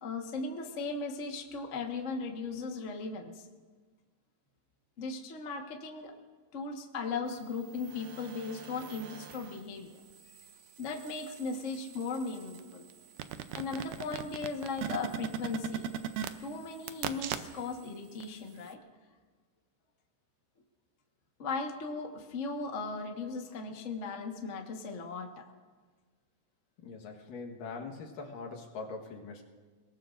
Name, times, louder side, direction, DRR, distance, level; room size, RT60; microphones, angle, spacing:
voice 1, 0.0-3.5 5.0-6.1 6.5-10.0 10.8-12.9 13.5-15.9 16.4-18.8 21.4-25.3, left 4 dB, 55° left, 2 dB, 0.8 m, -37 dB
sound 1, 7.6-9.6 10.1-17.9 18.2-18.3, right 10 dB, 75° right, 2.1 m, -41 dB
voice 2, 26.8-29.4, left 4 dB, 80° left, 1 dB, 3.1 m, -42 dB
29.0 x 19.0 x 2.6 m, 1.5 s
omnidirectional pair, 3.8 m